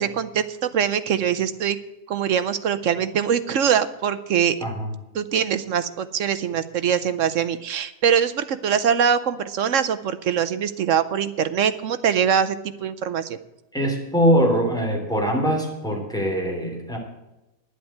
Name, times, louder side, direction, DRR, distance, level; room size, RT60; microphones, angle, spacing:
voice 1, 0.0-1.8 2.1-4.6 5.1-13.4, right 8 dB, 60° right, 12 dB, 0.9 m, -23 dB
voice 2, 13.7-17.0, equal, ahead, 0 dB, 3.1 m, -22 dB
11.0 x 7.9 x 9.2 m, 0.97 s
omnidirectional pair, 1.8 m